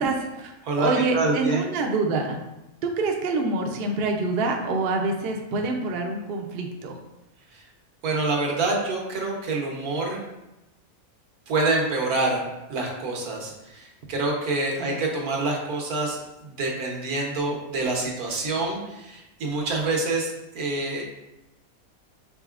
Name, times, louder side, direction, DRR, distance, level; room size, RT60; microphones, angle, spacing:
voice 1, 0.0-2.4 2.8-7.0 14.8-15.0, right 3 dB, 60° right, 2 dB, 0.6 m, -26 dB
voice 2, 0.6-1.7 7.5-7.6 8.0-10.2 11.5-12.4 12.7-21.0, right 2 dB, 85° right, -1 dB, 1.5 m, -27 dB
5.3 x 3.7 x 2.4 m, 0.96 s
omnidirectional pair, 1.5 m